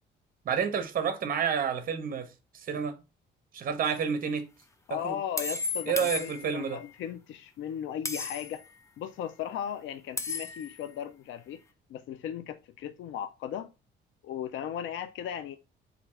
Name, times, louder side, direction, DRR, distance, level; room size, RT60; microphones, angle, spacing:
voice 1, 0.5-2.3 2.5-3.0 3.5-4.4 4.9-5.2 5.9-6.8, right 7 dB, 45° right, 0.6 m, -29 dB
sound 1, 3.8-4.0 5.4-6.8 8.0-8.7 10.2-10.8, left 4 dB, 15° left, 0.4 m, -35 dB
voice 2, 4.9-8.6 9.0-11.6 11.9-13.7 14.2-15.6, left 9 dB, 75° left, 0.4 m, -37 dB
3.4 x 2.4 x 3.0 m
cardioid pair, 90°, 20 cm